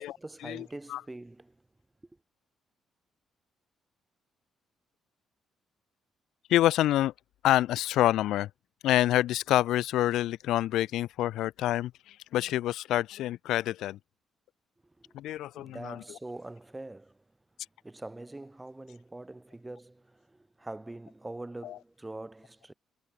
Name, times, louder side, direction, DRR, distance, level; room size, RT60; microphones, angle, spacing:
voice 1, 0.0-1.6 14.8-15.2 15.5-17.2 17.8-22.7, right 2 dB, 15° right, 6.9 m, -44 dB
voice 2, 6.5-7.1 7.4-8.5 8.8-14.0 15.1-16.2 21.6-21.8, left 14 dB, 85° left, 0.6 m, -27 dB
cardioid pair, 85°, 0 cm